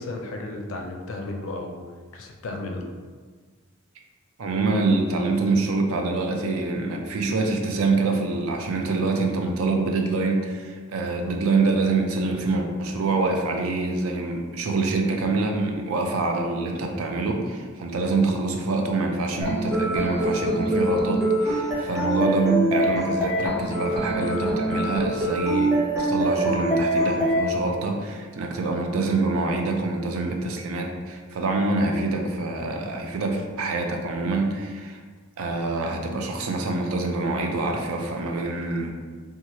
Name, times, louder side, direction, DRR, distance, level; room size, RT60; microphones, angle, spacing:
voice 1, 0.0-1.8 2.1-2.9, left 2 dB, 60° left, 2 dB, 0.4 m, -33 dB
voice 2, 4.4-35.0 35.4-38.9, right 3 dB, 70° right, 2 dB, 0.4 m, -25 dB
sound 1, 19.4-27.4, right 1 dB, ahead, 0.8 m, -24 dB
2.9 x 2.3 x 2.8 m, 1.5 s
head